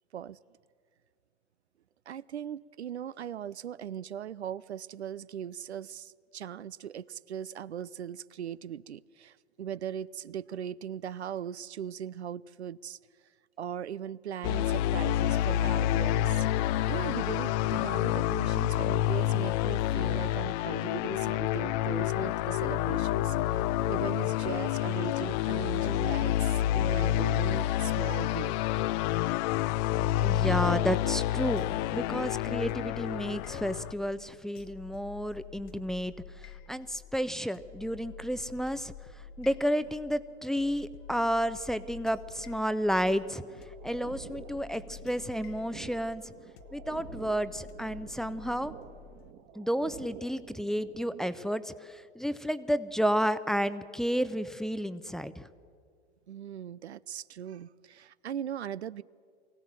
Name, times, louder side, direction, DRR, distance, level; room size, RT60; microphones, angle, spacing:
voice 1, 2.1-13.0 13.6-16.5 16.9-28.6 56.3-59.0, right 9 dB, 90° right, 0.5 m, -39 dB
sound 1, 14.4-33.9, left 13 dB, 45° left, 0.5 m, -28 dB
voice 2, 30.2-38.9 39.4-43.4 43.8-46.3 46.7-48.7 49.6-55.5, equal, ahead, 0.6 m, -31 dB
sound 2, 31.6-49.3, left 5 dB, 65° left, 1.3 m, -49 dB
sound 3, 43.0-51.2, right 9 dB, 45° right, 1.8 m, -50 dB
24.0 x 16.5 x 7.5 m
hypercardioid pair, 95°, 32 cm